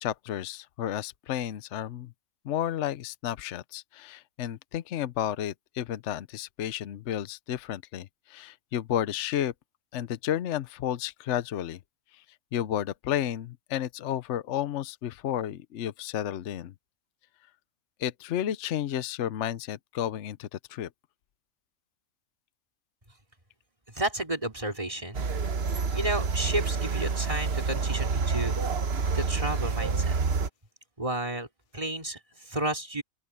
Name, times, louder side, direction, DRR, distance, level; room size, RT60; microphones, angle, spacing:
voice 1, 0.0-2.1 2.4-9.5 9.9-11.8 12.1-12.2 12.5-16.7 18.0-20.9, left 11 dB, 65° left, 1.0 m, -32 dB
voice 2, 23.9-25.3 25.9-28.5 29.1-30.2 31.0-31.5 31.7-33.0, right 1 dB, 25° right, 3.4 m, -32 dB
sound 1, 25.1-30.5, right 5 dB, 50° right, 1.2 m, -28 dB
open air
omnidirectional pair, 1.5 m